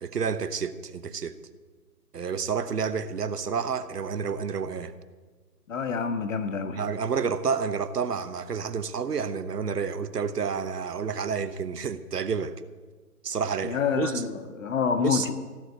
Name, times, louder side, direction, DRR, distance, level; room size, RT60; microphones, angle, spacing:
voice 1, 0.0-1.3 2.1-4.9 6.7-12.6 13.2-14.2 15.0-15.3, right 6 dB, 75° right, 12 dB, 1.1 m, -29 dB
voice 2, 5.7-6.8 13.6-15.3, left 6 dB, 55° left, 9 dB, 1.6 m, -27 dB
16.5 x 7.4 x 9.5 m, 1.4 s
figure-of-eight pair, 150°, 48 cm